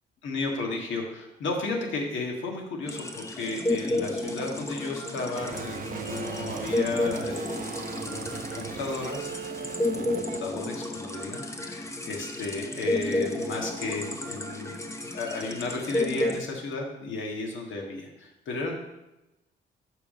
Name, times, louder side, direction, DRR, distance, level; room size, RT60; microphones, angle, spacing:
voice 1, 0.2-7.6 7.9-9.3 9.9-14.8 15.1-18.8, left 3 dB, 75° left, 1 dB, 1.8 m, -34 dB
sound 1, 2.9-16.4, left 2 dB, 15° left, 0.9 m, -32 dB
sound 2, 5.4-10.4, right 8 dB, 45° right, 0.5 m, -38 dB
6.7 x 5.4 x 5.4 m, 0.96 s
cardioid pair, 90°, 20 cm